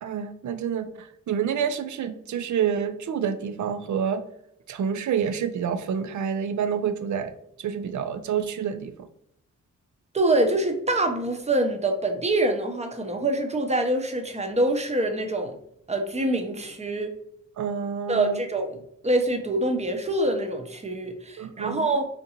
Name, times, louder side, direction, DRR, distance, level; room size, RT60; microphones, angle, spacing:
voice 1, 0.0-4.2 4.7-7.3 7.6-8.9 17.6-18.4 21.4-21.9, right 7 dB, 60° right, 9 dB, 0.5 m, -28 dB
voice 2, 10.1-15.6 15.9-17.1 18.1-22.0, right 1 dB, 20° right, 4 dB, 0.7 m, -25 dB
3.8 x 2.5 x 2.8 m, 0.74 s
supercardioid pair, 45°, 33 cm